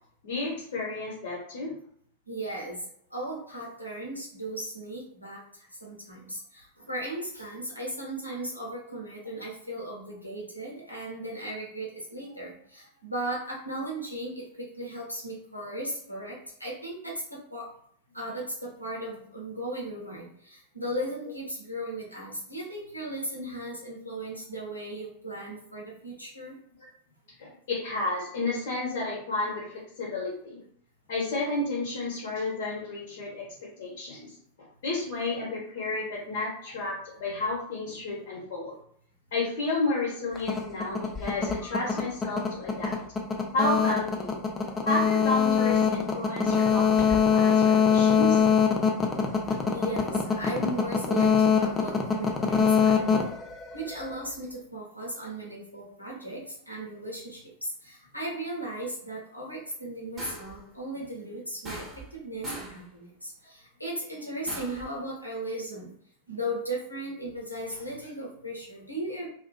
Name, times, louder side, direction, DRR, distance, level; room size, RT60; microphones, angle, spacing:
voice 1, 0.2-1.8 27.4-30.6 31.1-34.3 34.8-38.7 39.3-43.0 43.5-44.4 44.8-48.4, left 2 dB, 55° left, -4 dB, 0.7 m, -31 dB
voice 2, 2.3-2.8 3.1-5.4 5.8-17.7 18.1-26.6 49.7-53.3 53.7-57.4 57.8-61.8 62.1-65.9 66.3-69.3, right 1 dB, 85° left, -3 dB, 0.8 m, -36 dB
sound 1, 40.3-54.2, left 6 dB, 20° left, 0.4 m, -23 dB
sound 2, 60.2-60.6 61.6-62.2 62.4-62.8 64.5-64.9, right 1 dB, 25° right, 0.8 m, -40 dB
2.4 x 2.3 x 2.2 m, 0.63 s
figure-of-eight pair, 90°, 0 cm